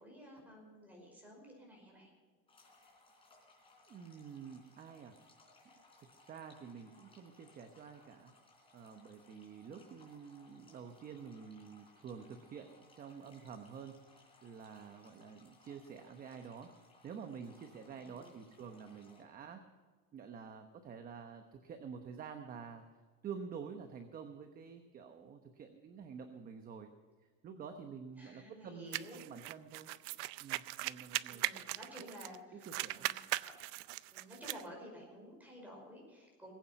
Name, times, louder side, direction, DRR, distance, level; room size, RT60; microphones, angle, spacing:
voice 1, 0.0-2.1 17.9-18.3 28.2-29.2 31.3-33.5 34.1-36.5, equal, 5° right, -1 dB, 5.3 m, -53 dB
sound 1, 2.5-19.2, left 2 dB, 20° left, 3.8 m, -65 dB
voice 2, 3.9-5.2 6.0-8.3 8.7-16.7 17.0-19.6 20.1-22.8 23.2-26.9 27.2-29.9 30.4-32.1 32.5-33.1, right 6 dB, 30° right, 6 dB, 1.0 m, -49 dB
sound 2, 28.9-32.4 32.6-34.6, right 19 dB, 85° right, 0.6 m, -39 dB
20.0 x 8.9 x 5.8 m, 1.5 s
cardioid pair, 160°, 30 cm